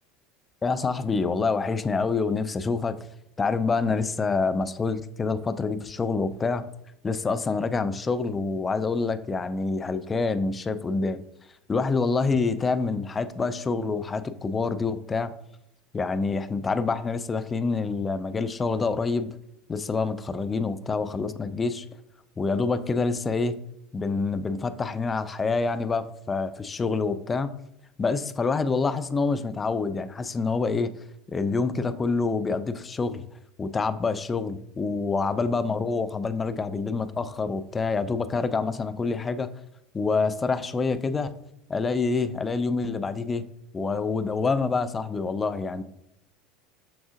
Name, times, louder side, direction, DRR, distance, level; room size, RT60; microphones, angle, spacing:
voice 1, 0.6-3.0 3.4-6.7 7.0-11.2 11.7-15.3 15.9-19.3 19.7-21.8 22.4-23.6 23.9-27.5 28.0-30.9 31.3-33.2 33.6-39.5 39.9-41.3 41.7-43.4 43.7-45.8, left 4 dB, 25° left, 11 dB, 0.3 m, -27 dB
5.9 x 3.6 x 2.5 m, 0.80 s
figure-of-eight pair, 70°, 0 cm